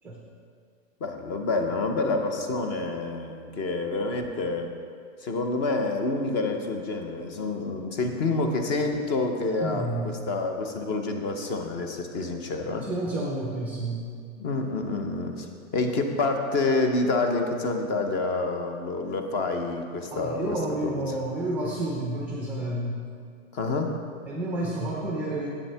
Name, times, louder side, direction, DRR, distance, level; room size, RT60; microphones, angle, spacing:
voice 1, 1.0-4.7 5.2-12.9 14.4-15.5 15.7-20.6 20.8-20.9 23.5-23.9, left 3 dB, 25° left, 5 dB, 0.7 m, -28 dB
voice 2, 9.6-10.1 12.8-14.0 20.1-23.0 24.3-25.5, right 2 dB, 5° right, -2 dB, 0.4 m, -30 dB
8.5 x 8.1 x 3.4 m, 2.2 s
hypercardioid pair, 140°, 41 cm